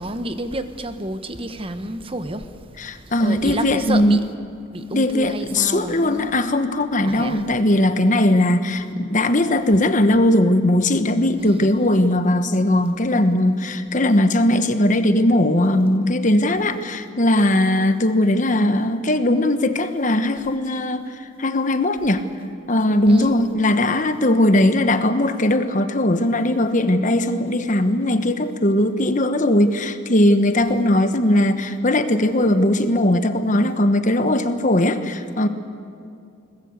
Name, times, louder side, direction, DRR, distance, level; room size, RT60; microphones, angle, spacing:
voice 1, 0.0-2.5 3.2-4.2 4.7-6.3 7.0-7.4 11.4-11.7 23.1-23.3 30.7-30.8, right 1 dB, 25° right, 1.1 m, -29 dB
voice 2, 2.8-4.2 4.9-22.2 22.7-35.5, left 1 dB, 40° left, 1.2 m, -19 dB
22.0 x 20.0 x 8.2 m
head